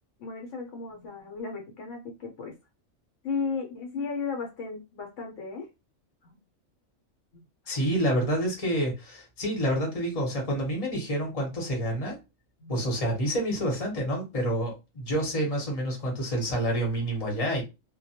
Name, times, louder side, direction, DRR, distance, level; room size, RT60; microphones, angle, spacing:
voice 1, 0.2-2.5 3.2-5.7 6.2-6.4 7.3-7.4 12.6-13.0, left 5 dB, 70° left, 0.9 m, -35 dB
voice 2, 7.7-12.2 12.7-17.6, right 1 dB, 30° left, 0.8 m, -28 dB
2.2 x 2.2 x 2.7 m
omnidirectional pair, 1.4 m